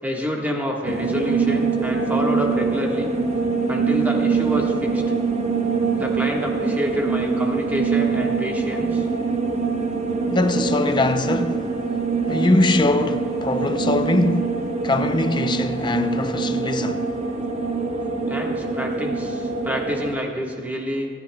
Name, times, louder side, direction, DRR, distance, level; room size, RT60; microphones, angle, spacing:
voice 1, 0.0-3.1 3.7-5.0 5.9-9.0 18.3-21.1, equal, 10° right, 1.5 m, -28 dB
sound 1, 0.8-20.1, right 4 dB, 35° right, 1.0 m, -24 dB
voice 2, 10.3-11.8 12.3-17.1, left 2 dB, 25° left, 0.6 m, -22 dB
26.5 x 10.5 x 2.3 m
head